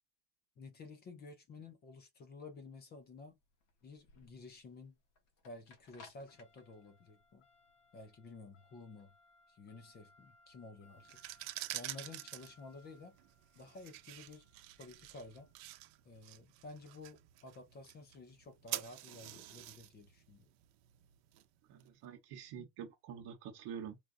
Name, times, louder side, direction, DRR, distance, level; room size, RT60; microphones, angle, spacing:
voice 1, 0.6-3.4 3.8-5.0 5.4-7.4 7.9-9.1 9.5-11.2 11.7-13.2 13.6-14.4 14.8-15.5 16.0-20.5, left 3 dB, 25° left, 0.3 m, -52 dB
sound 1, 3.0-17.1, left 3 dB, 40° left, 1.0 m, -65 dB
sound 2, 11.0-21.8, right 17 dB, 75° right, 0.7 m, -48 dB
voice 2, 21.6-24.1, right 8 dB, 55° right, 0.9 m, -47 dB
4.6 x 2.3 x 2.5 m
cardioid pair, 170°, 46 cm